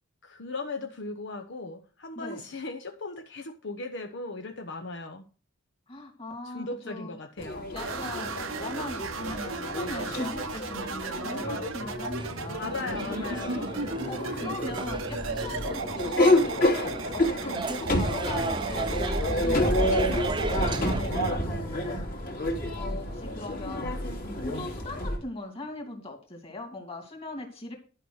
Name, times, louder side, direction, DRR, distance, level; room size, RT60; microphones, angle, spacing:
voice 1, 0.2-5.3 6.4-7.7 12.6-13.8 21.4-21.7 22.8-23.0, left 3 dB, 65° left, 5 dB, 0.9 m, -37 dB
voice 2, 5.9-7.1 7.7-12.8 14.1-16.6 17.1-22.1 22.7-27.8, left 2 dB, 30° left, 4 dB, 2.8 m, -40 dB
sound 1, 7.4-25.2, left 1 dB, 45° left, 2.8 m, -29 dB
sound 2, 7.8-21.4, right 4 dB, 85° right, 1.0 m, -36 dB
sound 3, 12.2-21.0, right 3 dB, 25° right, 0.6 m, -37 dB
11.5 x 5.6 x 6.3 m, 0.36 s
head